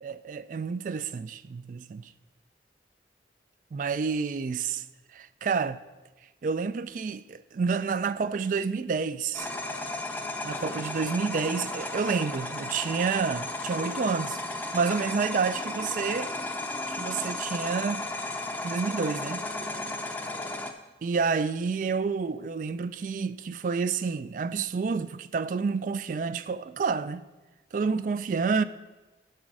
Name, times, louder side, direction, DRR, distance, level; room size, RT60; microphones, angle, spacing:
voice 1, 0.0-2.1 3.7-4.8 5.1-5.8 6.4-9.5 10.4-14.4 14.7-16.3 16.9-18.1 18.6-19.4 21.0-27.2 27.7-28.6, right 5 dB, 45° right, 0.3 m, -29 dB
sound 1, 9.3-20.7, left 2 dB, 10° left, 0.5 m, -34 dB
9.9 x 6.4 x 4.7 m
head